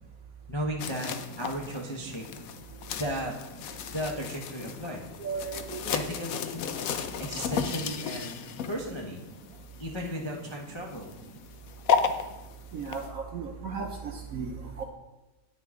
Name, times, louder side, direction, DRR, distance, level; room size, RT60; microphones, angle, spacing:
voice 1, 0.5-2.5 3.0-3.4 3.9-5.1 5.9-6.7 7.2-9.2 9.8-11.2, equal, 40° left, -1 dB, 0.4 m, -35 dB
sound 1, 0.8-13.1, left 6 dB, 70° left, 0.8 m, -34 dB
voice 2, 5.2-5.8 7.5-7.6 12.7-13.9 14.3-14.8, right 5 dB, 65° right, 3 dB, 0.9 m, -35 dB
9.6 x 9.4 x 3.7 m, 1.1 s
omnidirectional pair, 2.1 m